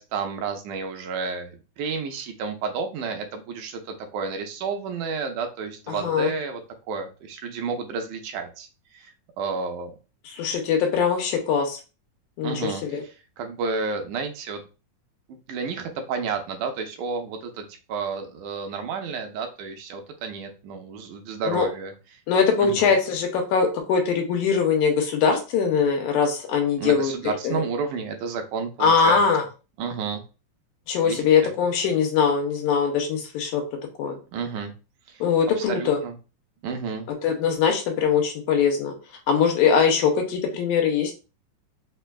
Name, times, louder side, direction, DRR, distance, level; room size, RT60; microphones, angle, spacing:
voice 1, 0.0-6.6 6.9-8.7 8.9-9.1 9.4-9.9 12.4-12.8 13.4-14.6 15.3-21.9 22.6-22.9 26.8-29.2 29.8-30.2 31.0-31.3 34.3-34.7 35.1-35.2 35.7-36.2 36.6-37.1, right 5 dB, 85° right, 4 dB, 2.0 m, -31 dB
voice 2, 5.9-6.3 10.3-11.8 12.4-13.0 21.5-21.7 22.3-27.1 27.4-27.6 28.8-29.5 30.9-33.6 34.0-34.2 35.2-36.0 37.2-38.9 39.3-41.1, left 6 dB, 80° left, 4 dB, 2.1 m, -22 dB
5.1 x 2.2 x 2.3 m, 0.32 s
omnidirectional pair, 3.6 m